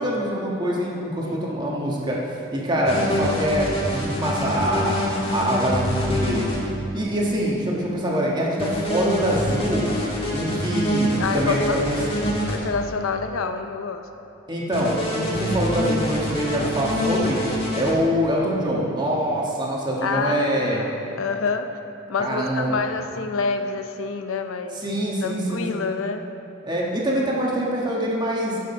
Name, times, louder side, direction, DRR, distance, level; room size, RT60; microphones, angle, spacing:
voice 1, 0.0-2.2 2.5-5.0 5.3-6.5 6.9-9.9 10.3-12.0 14.5-17.4 17.7-20.8 22.2-22.8 24.8-25.8 26.6-28.6, equal, 20° right, -3 dB, 1.4 m, -24 dB
sound 1, 2.9-6.6 8.6-12.6 14.7-17.9, equal, 25° left, 1.6 m, -26 dB
voice 2, 11.2-12.1 12.4-14.1 20.0-21.8 22.1-24.8 25.2-26.2, left 4 dB, 70° left, 7 dB, 0.5 m, -27 dB
11.5 x 6.4 x 5.5 m, 2.9 s
head